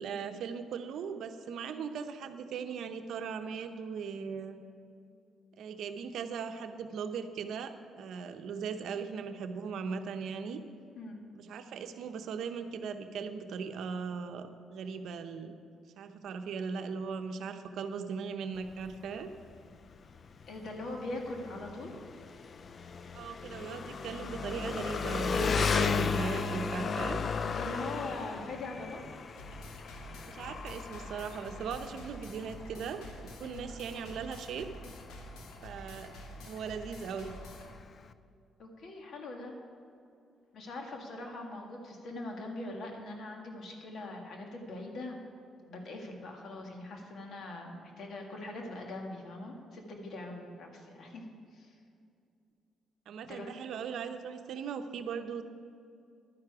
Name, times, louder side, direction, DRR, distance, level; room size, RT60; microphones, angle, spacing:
voice 1, 0.0-4.6 5.6-10.6 11.3-15.6 16.0-19.3 23.1-27.2 30.3-34.7 35.6-36.1 36.5-37.4 53.1-55.4, right 6 dB, 75° right, 8 dB, 0.7 m, -39 dB
Engine, 18.6-38.1, left 5 dB, 45° left, 0.4 m, -36 dB
voice 2, 20.5-21.9 27.2-29.0 33.4-33.7 38.6-39.6 40.5-45.2 45.7-51.2 51.5-51.7 53.2-53.5, left 2 dB, 60° left, 1 dB, 1.9 m, -42 dB
sound 1, 29.4-37.7, equal, 90° left, 1.5 m, -48 dB
11.5 x 9.7 x 4.8 m, 2.5 s
cardioid pair, 90°, 0 cm